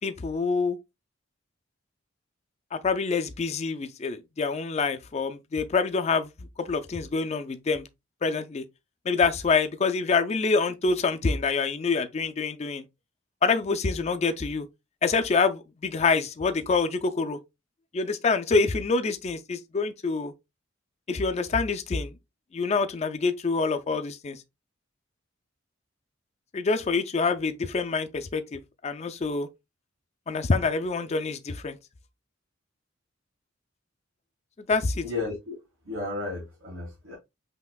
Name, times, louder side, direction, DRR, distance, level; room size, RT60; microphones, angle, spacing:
voice 1, 0.0-0.8 2.7-6.3 6.6-7.9 8.2-8.6 9.1-12.8 13.4-14.7 15.0-17.4 17.9-20.3 21.1-22.2 22.5-24.4 26.5-29.5 30.3-31.8 34.7-35.1, left 4 dB, 35° left, 0.4 m, -26 dB
voice 2, 35.0-35.6 35.9-37.2, left 3 dB, 75° right, 1.9 m, -33 dB
5.6 x 2.9 x 2.3 m
head